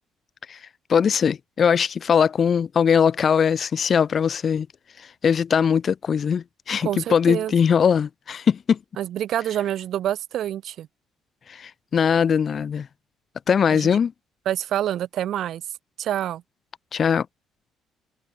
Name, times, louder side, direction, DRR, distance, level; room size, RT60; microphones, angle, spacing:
voice 1, 0.9-4.7 5.2-8.8 11.5-12.9 13.5-14.1 16.9-17.3, left 7 dB, 40° left, 1.0 m, -20 dB
voice 2, 6.8-7.5 9.0-10.9 13.7-13.9 14.5-15.6 16.0-16.4, right 11 dB, 60° right, 2.1 m, -27 dB
cardioid pair, 140°, 0 cm